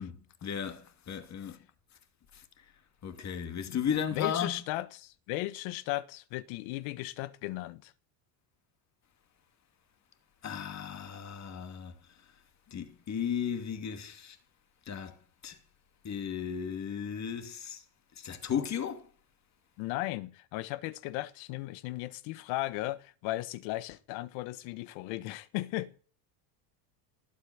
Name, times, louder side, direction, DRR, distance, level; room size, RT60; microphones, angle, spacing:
voice 1, 0.0-1.6 3.0-4.5 10.4-11.9 12.7-14.4 14.9-15.2 15.4-15.6 16.0-17.8 18.2-19.1, left 8 dB, 35° left, 2.7 m, -35 dB
voice 2, 4.1-7.9 19.8-25.9, left 17 dB, 75° left, 1.5 m, -36 dB
18.5 x 8.6 x 8.0 m
supercardioid pair, 120°, 47 cm